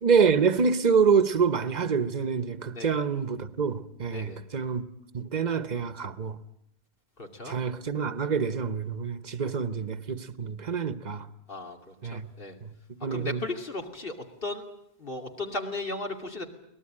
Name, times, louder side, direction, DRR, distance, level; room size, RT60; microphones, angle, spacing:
voice 1, 0.0-4.8 5.1-6.4 7.4-11.3 12.0-12.2 13.0-13.4, right 6 dB, 45° right, 1.1 m, -26 dB
voice 2, 7.2-7.6 11.5-12.5 13.1-14.6 15.0-16.4, left 2 dB, 60° left, 2.8 m, -36 dB
23.0 x 19.0 x 8.8 m
omnidirectional pair, 1.1 m